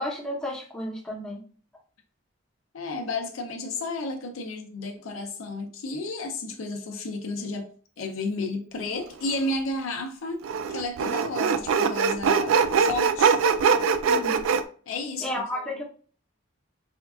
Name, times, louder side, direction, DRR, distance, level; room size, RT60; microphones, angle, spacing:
voice 1, 0.0-1.4 14.1-14.4 15.2-15.8, left 1 dB, 5° left, 0.8 m, -32 dB
voice 2, 2.7-7.7 8.0-10.4 10.7-13.4 14.9-15.3 15.5-15.7, left 2 dB, 85° left, 0.5 m, -32 dB
Sawing, 9.2-9.3 10.4-14.6, right 6 dB, 85° right, 0.3 m, -22 dB
4.3 x 2.4 x 2.3 m
head